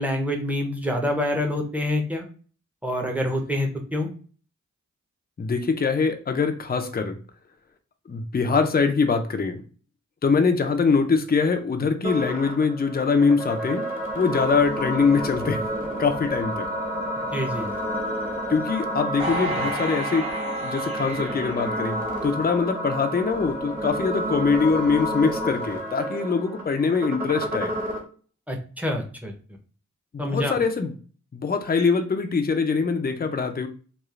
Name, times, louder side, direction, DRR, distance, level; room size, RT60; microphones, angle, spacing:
voice 1, 0.0-2.2 2.8-4.1 17.3-17.7 28.5-29.3 30.2-30.5, left 1 dB, 5° right, 1 dB, 0.7 m, -26 dB
voice 2, 5.4-7.2 8.1-9.6 10.2-13.9 14.2-15.6 16.0-16.7 18.5-22.0 22.2-27.7 30.1-31.0 31.3-33.7, left 5 dB, 30° left, 6 dB, 0.5 m, -23 dB
sound 1, 12.0-28.0, equal, 30° right, 1.2 m, -30 dB
sound 2, 19.2-22.6 23.1-23.2, right 1 dB, 45° right, 1.2 m, -33 dB
3.0 x 2.4 x 2.4 m, 0.41 s
wide cardioid pair, 55°, 30 cm